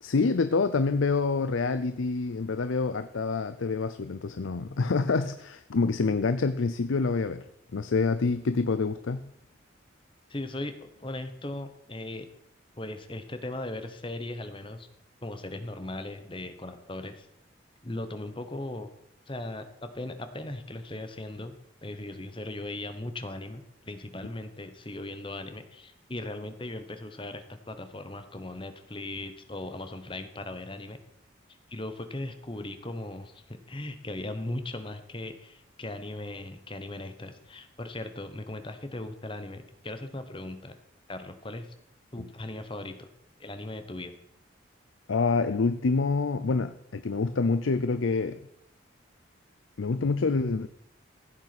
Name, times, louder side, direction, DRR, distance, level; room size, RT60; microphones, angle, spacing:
voice 1, 0.0-7.4 7.7-9.3 42.2-42.3 45.1-48.4 49.8-50.7, left 4 dB, 85° left, 12 dB, 0.6 m, -27 dB
voice 2, 10.3-12.3 12.8-14.9 15.2-17.3 17.8-18.9 19.3-21.5 21.8-31.0 31.7-40.8 41.1-41.7 42.1-43.1 43.4-44.1, left 1 dB, 25° left, 9 dB, 1.1 m, -38 dB
15.0 x 8.1 x 6.0 m, 0.78 s
head